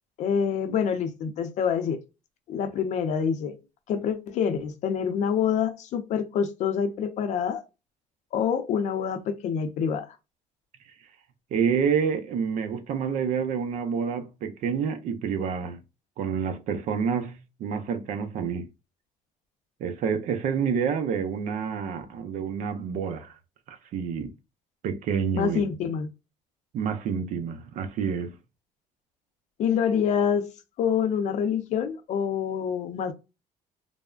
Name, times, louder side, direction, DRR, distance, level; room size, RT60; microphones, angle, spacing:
voice 1, 0.2-2.0 2.5-3.6 3.9-7.6 8.3-10.1 25.3-26.1 29.6-30.5 30.8-33.1, left 7 dB, 60° left, 0.6 m, -26 dB
voice 2, 11.5-15.8 16.2-18.7 19.8-23.3 23.7-24.3 24.8-25.6 26.7-28.3, right 6 dB, 65° right, 0.5 m, -28 dB
3.3 x 2.0 x 2.3 m
cardioid pair, 140°, 13 cm